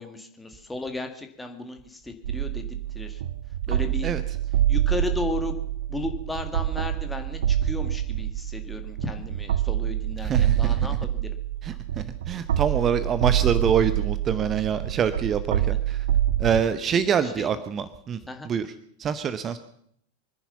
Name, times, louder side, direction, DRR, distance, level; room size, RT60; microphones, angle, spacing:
voice 1, 0.0-3.2 3.7-4.1 4.7-5.5 5.9-11.3 15.5-15.8 17.2-17.5 18.3-18.5, left 3 dB, 5° left, 5 dB, 1.9 m, -35 dB
sound 1, 2.2-16.6, right 11 dB, 60° right, 0.7 m, -26 dB
voice 2, 10.2-11.0 11.6-16.0 16.4-18.2 18.4-18.7 19.0-19.6, right 7 dB, 25° right, 13 dB, 0.7 m, -25 dB
24.0 x 10.0 x 5.8 m, 0.68 s
figure-of-eight pair, 90°, 0 cm